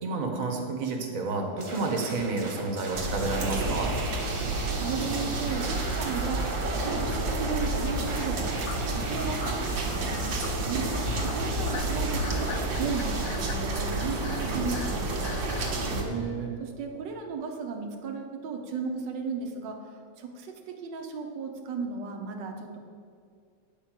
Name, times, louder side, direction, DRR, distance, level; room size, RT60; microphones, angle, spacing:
voice 1, 0.0-3.9 11.0-11.3 15.8-16.5, right 3 dB, 50° right, 2 dB, 1.6 m, -30 dB
sound 1, 1.6-13.3, right 2 dB, 30° right, 0.5 m, -39 dB
sound 2, 2.9-16.0, right 2 dB, 90° right, 2.1 m, -30 dB
voice 2, 4.4-15.6 16.0-16.1 16.6-22.8, right 5 dB, 70° right, 2 dB, 1.7 m, -35 dB
sound 3, 8.6-15.8, left 8 dB, 65° left, 0.8 m, -41 dB
8.7 x 5.6 x 7.5 m, 2.2 s
omnidirectional pair, 2.0 m